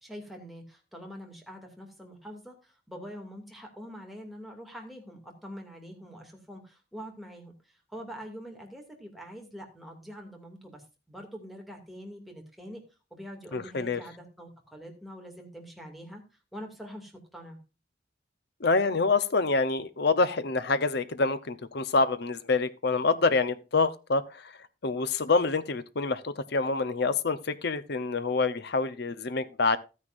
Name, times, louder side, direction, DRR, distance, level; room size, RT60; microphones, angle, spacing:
voice 1, 0.0-7.5 7.9-10.8 11.1-12.8 13.1-16.2 16.5-17.6, equal, ahead, 2.4 m, -44 dB
voice 2, 13.5-14.0 18.6-24.5 24.8-29.8, left 3 dB, 60° left, 0.8 m, -26 dB
13.0 x 9.7 x 2.6 m
head